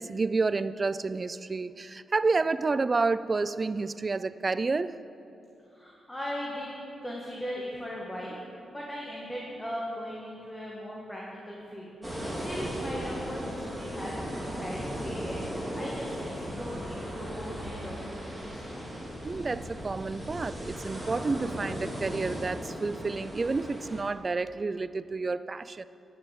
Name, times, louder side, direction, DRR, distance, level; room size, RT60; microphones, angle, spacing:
voice 1, 0.0-5.0 19.2-25.8, right 3 dB, 35° right, 15 dB, 0.3 m, -30 dB
voice 2, 5.7-6.7 7.0-8.4 8.7-11.9 12.3-18.9, equal, 15° left, -4 dB, 1.7 m, -39 dB
sound 1, 12.0-24.0, equal, 5° right, 2.3 m, -37 dB
9.7 x 6.6 x 7.3 m, 2.7 s
cardioid pair, 70°, 0 cm